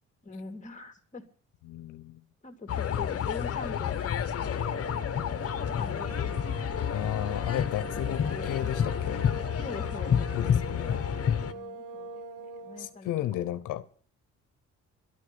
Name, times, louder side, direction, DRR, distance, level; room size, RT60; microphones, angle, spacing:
voice 1, 0.2-1.2 2.4-5.3 5.8-6.7 7.8-9.0 9.6-10.4 11.4-13.5, left 4 dB, 25° left, 2.8 m, -43 dB
voice 2, 1.6-2.2 6.9-9.3 10.3-11.0 12.8-13.9, left 12 dB, 85° left, 0.9 m, -33 dB
sound 1, 2.7-11.5, left 9 dB, 50° left, 1.3 m, -30 dB
sound 2, 4.2-13.0, right 3 dB, 90° right, 2.1 m, -42 dB
12.5 x 9.7 x 6.9 m
cardioid pair, 90°, 30 cm